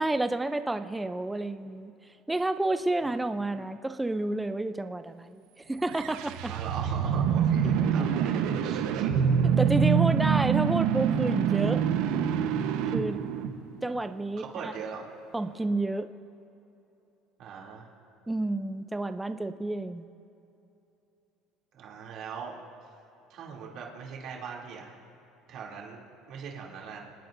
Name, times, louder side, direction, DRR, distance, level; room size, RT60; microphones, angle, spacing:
voice 1, 0.0-1.9 2.3-6.5 9.6-11.8 12.9-13.2 13.8-14.7 15.3-16.1 18.3-20.1, right 2 dB, 10° right, 9 dB, 0.5 m, -30 dB
sound 1, 5.8-14.0, right 7 dB, 80° right, 1.0 m, -26 dB
voice 2, 6.5-9.5 14.4-15.0 17.4-17.9 21.7-22.5 23.3-25.0 25.5-26.0 26.3-27.1, right 6 dB, 60° right, -3 dB, 2.9 m, -40 dB
26.0 x 19.0 x 2.7 m, 2.9 s
cardioid pair, 120°, 0 cm